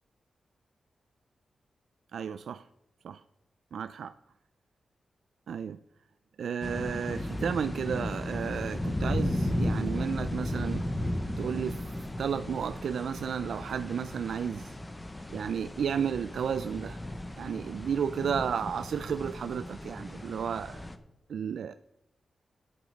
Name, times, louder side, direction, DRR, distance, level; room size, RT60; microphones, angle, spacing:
voice 1, 2.1-2.6 3.0-3.2 3.7-4.1 5.5-5.8 6.4-10.8 11.4-11.9 12.2-14.8 15.3-17.0 17.4-20.8 21.3-21.7, right 7 dB, 80° right, 12 dB, 0.3 m, -33 dB
sound 1, 6.6-21.0, left 1 dB, 15° left, 0.7 m, -35 dB
10.5 x 8.1 x 5.2 m, 0.90 s
wide cardioid pair, 165°, 0 cm